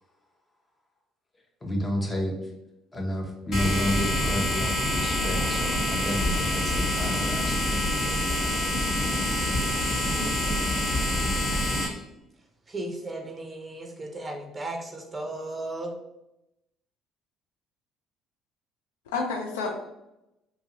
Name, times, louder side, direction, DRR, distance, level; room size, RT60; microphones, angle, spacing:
voice 1, 1.6-2.4 2.9-7.8, equal, 25° left, 0 dB, 0.8 m, -31 dB
sound 1, 3.5-11.9, left 1 dB, 50° left, 1.0 m, -26 dB
voice 2, 10.1-10.6 19.1-19.7, left 4 dB, 75° left, 2 dB, 0.5 m, -32 dB
voice 3, 12.7-15.9, right 2 dB, 25° right, 3 dB, 0.6 m, -35 dB
2.8 x 2.5 x 2.8 m, 0.89 s
hypercardioid pair, 55°, 0 cm